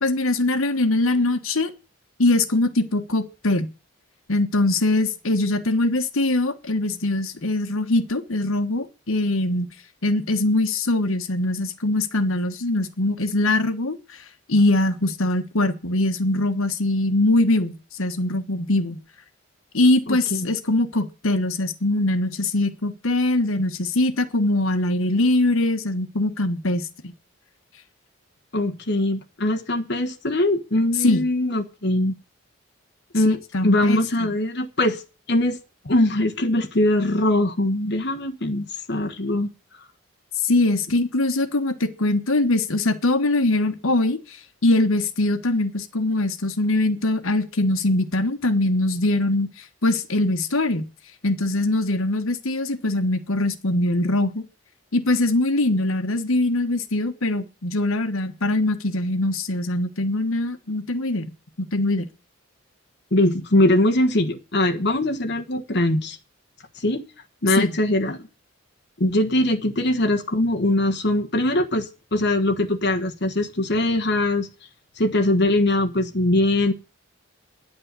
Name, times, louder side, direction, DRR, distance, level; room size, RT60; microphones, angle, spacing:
voice 1, 0.0-1.7 2.2-3.7 4.3-9.7 10.0-19.0 19.7-27.1 31.0-31.2 33.5-34.3 40.4-44.4 44.6-49.5 49.8-50.8 51.2-54.4 54.9-61.3 61.6-62.1 67.6-67.7, left 2 dB, 80° left, 1.3 m, -22 dB
voice 2, 20.1-20.5 28.5-32.1 33.1-35.0 35.3-35.6 35.8-39.5 63.1-66.2 66.8-67.0 67.4-68.3 69.0-74.5 75.0-76.7, left 1 dB, 50° left, 1.3 m, -22 dB
10.5 x 8.7 x 8.2 m
head